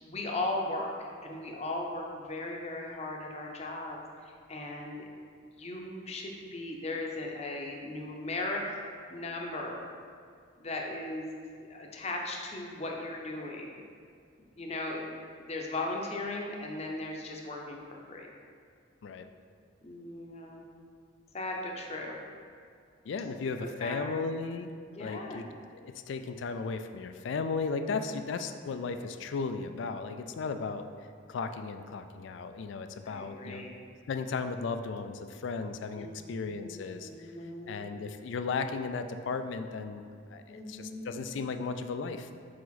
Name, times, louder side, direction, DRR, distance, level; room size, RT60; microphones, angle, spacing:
voice 1, 0.0-5.0 5.4-8.8 9.1-9.8 10.6-11.3 11.7-13.7 14.6-15.1 15.4-18.3 19.8-20.6 21.3-22.2 23.6-24.2 24.9-25.4 27.9-28.0 33.0-33.7 36.0-37.8 40.5-41.2, left 2 dB, 35° left, 0 dB, 0.6 m, -37 dB
voice 2, 23.1-24.7 25.0-30.9 31.3-33.7 34.1-37.3 37.7-40.0 40.3-42.3, left 4 dB, 70° left, 8 dB, 0.3 m, -35 dB
5.0 x 4.7 x 4.1 m, 2.3 s
head